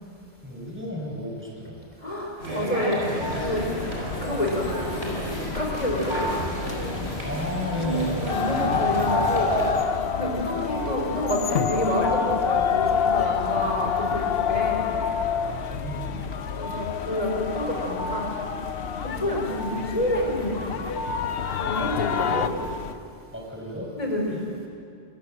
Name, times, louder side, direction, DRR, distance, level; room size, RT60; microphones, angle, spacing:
voice 1, 0.4-1.9 7.2-8.3 15.3-16.3 19.2-19.3 23.3-23.9 24.3-24.4, left 1 dB, 10° right, -1 dB, 5.7 m, -33 dB
voice 2, 2.0-3.1 3.3-3.7 4.2-5.2 5.5-6.2 7.8-9.5 10.1-14.9 16.6-18.3 19.0-20.8 21.5-22.5 24.0-24.4, left 1 dB, 35° left, -1 dB, 5.1 m, -28 dB
sound 1, 2.4-9.7, right 1 dB, 80° right, 6.5 m, -31 dB
sound 2, 3.2-22.9, left 3 dB, 90° left, 1.4 m, -35 dB
sound 3, 8.3-22.5, left 7 dB, 70° left, 1.0 m, -28 dB
26.5 x 22.5 x 7.8 m, 2.4 s
omnidirectional pair, 1.1 m